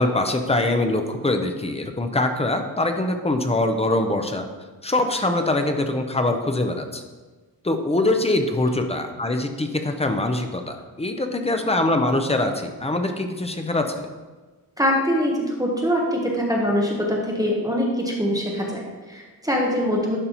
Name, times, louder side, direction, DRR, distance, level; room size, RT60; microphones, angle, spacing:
voice 1, 0.0-4.4 4.8-7.0 7.6-14.1, left 2 dB, 15° left, 5 dB, 0.5 m, -23 dB
voice 2, 14.8-20.2, equal, 10° right, -2 dB, 1.0 m, -23 dB
11.0 x 5.2 x 2.9 m, 1.3 s
wide cardioid pair, 150°, 37 cm